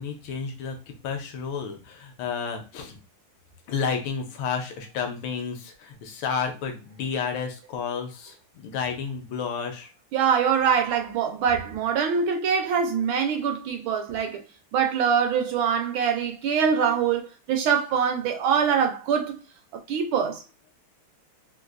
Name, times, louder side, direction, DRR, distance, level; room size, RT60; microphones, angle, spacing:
voice 1, 0.0-3.0 3.7-8.4 8.6-9.9, left 6 dB, 75° left, 1.4 m, -31 dB
voice 2, 10.1-14.4 14.7-19.4 19.9-20.4, right 7 dB, 75° right, 1.3 m, -24 dB
3.8 x 2.5 x 2.4 m
omnidirectional pair, 2.4 m